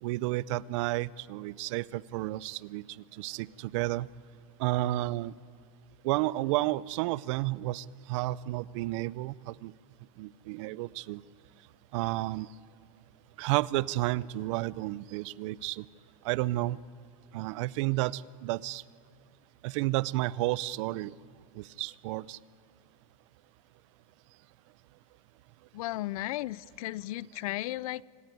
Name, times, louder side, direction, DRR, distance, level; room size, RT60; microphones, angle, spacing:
voice 1, 0.0-4.1 4.6-5.3 6.0-9.7 10.2-11.2 11.9-12.5 13.4-15.9 16.2-16.8 17.3-18.8 19.6-21.1 21.5-22.4, right 17 dB, 55° right, 21 dB, 0.5 m, -31 dB
voice 2, 25.7-28.0, left 17 dB, 70° left, 23 dB, 0.5 m, -35 dB
25.5 x 13.5 x 9.5 m, 2.3 s
supercardioid pair, 165°, 19 cm